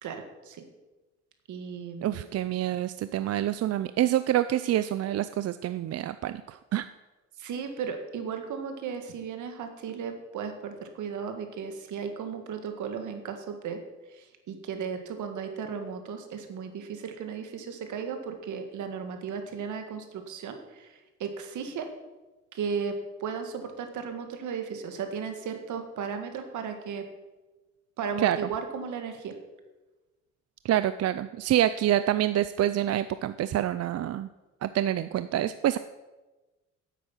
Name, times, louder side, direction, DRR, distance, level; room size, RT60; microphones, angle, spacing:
voice 1, 0.0-0.6 1.5-2.3 7.4-13.8 14.1-21.9 22.5-27.0 28.0-29.4, right 6 dB, 75° right, 6 dB, 1.8 m, -35 dB
voice 2, 2.0-6.9 28.2-28.4 30.6-34.3 34.6-35.8, right 12 dB, 55° right, 13 dB, 0.5 m, -27 dB
9.8 x 8.4 x 7.2 m, 1.1 s
cardioid pair, 90°, 30 cm